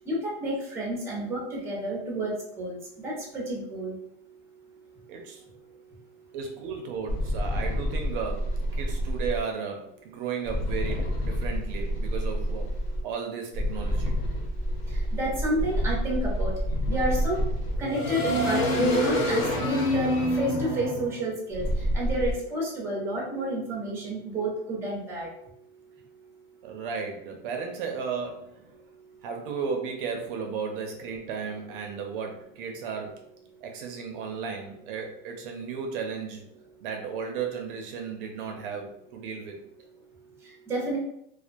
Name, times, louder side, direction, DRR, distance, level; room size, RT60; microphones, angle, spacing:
voice 1, 0.1-2.8 3.0-4.0 15.1-16.5 16.9-17.4 17.8-21.7 21.9-25.3 40.7-41.0, right 1 dB, 10° right, -3 dB, 0.6 m, -30 dB
voice 2, 5.1-5.4 6.3-12.8 13.0-14.2 26.6-28.7 29.2-33.2 33.6-36.4 36.8-39.6, right 6 dB, 60° right, 3 dB, 0.5 m, -34 dB
sound 1, 7.1-9.4 10.5-13.0 13.5-22.3, equal, 45° left, 0.7 m, -27 dB
2.3 x 2.2 x 2.5 m, 0.74 s
supercardioid pair, 145°, 31 cm